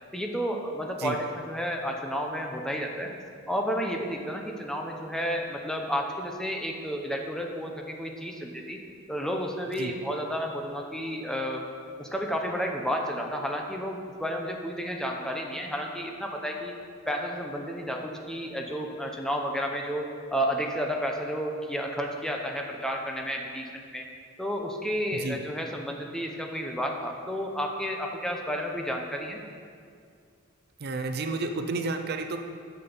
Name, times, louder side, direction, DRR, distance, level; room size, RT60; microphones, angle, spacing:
voice 1, 0.1-3.1 3.5-8.8 9.1-11.6 12.0-16.7 17.1-24.0 24.4-29.4, equal, 5° left, 1 dB, 0.8 m, -31 dB
voice 2, 30.8-32.4, right 3 dB, 50° right, 6 dB, 0.6 m, -31 dB
8.6 x 6.0 x 7.0 m, 2.2 s
head